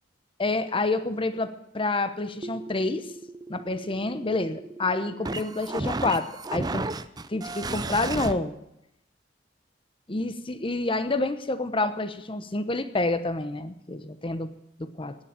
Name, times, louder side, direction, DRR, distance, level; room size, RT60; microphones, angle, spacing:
voice 1, 0.4-3.1 3.5-6.9 7.3-8.6 10.1-14.5 14.8-15.2, left 2 dB, 30° left, 10 dB, 0.9 m, -28 dB
sound 1, 2.4-8.3, right 2 dB, 20° right, 0.6 m, -34 dB
17.5 x 7.0 x 8.8 m, 0.83 s
head